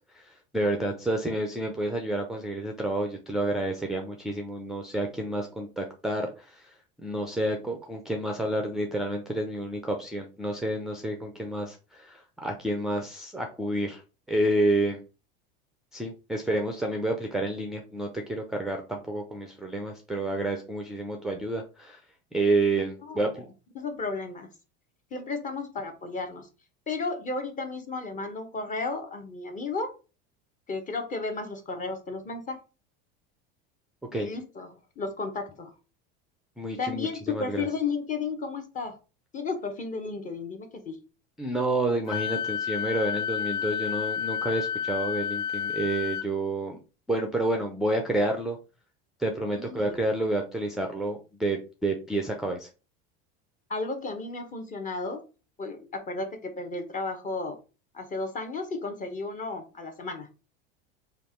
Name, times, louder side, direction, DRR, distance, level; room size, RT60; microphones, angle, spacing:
voice 1, 0.1-14.0 14.3-15.0 15.9-22.0 22.3-23.5 34.1-34.3 36.6-37.7 41.4-46.8 47.1-48.6 49.2-52.7, right 1 dB, ahead, 2 dB, 0.5 m, -29 dB
voice 2, 23.0-23.4 23.7-24.5 25.1-26.5 26.9-29.9 30.7-32.6 34.1-34.7 35.0-35.7 36.8-39.0 39.3-41.0 49.5-50.0 53.7-55.2 55.6-57.6 57.9-60.3, left 3 dB, 25° left, 6 dB, 0.9 m, -33 dB
Wind instrument woodwind instrument, 42.1-46.3, left 7 dB, 75° left, 0.5 m, -30 dB
3.4 x 2.4 x 4.3 m, 0.33 s
supercardioid pair, 115°, 30 cm